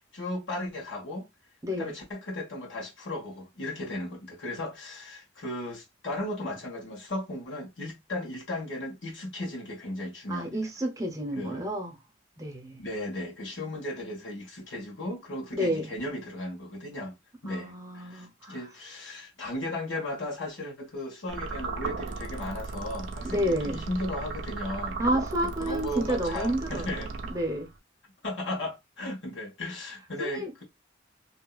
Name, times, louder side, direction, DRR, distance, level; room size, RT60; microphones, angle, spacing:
voice 1, 0.1-1.3 1.7-10.6 11.3-11.7 12.8-17.1 17.4-25.0 25.4-27.1 28.2-30.6, left 1 dB, 70° left, 1.5 m, -36 dB
voice 2, 1.6-2.0 10.3-12.0 12.4-12.8 15.5-15.9 17.4-18.6 23.2-23.9 25.0-27.7 30.2-30.5, right 1 dB, 15° right, 0.8 m, -30 dB
sound 1, 21.3-27.8, right 3 dB, 80° right, 0.5 m, -36 dB
2.8 x 2.8 x 2.3 m
head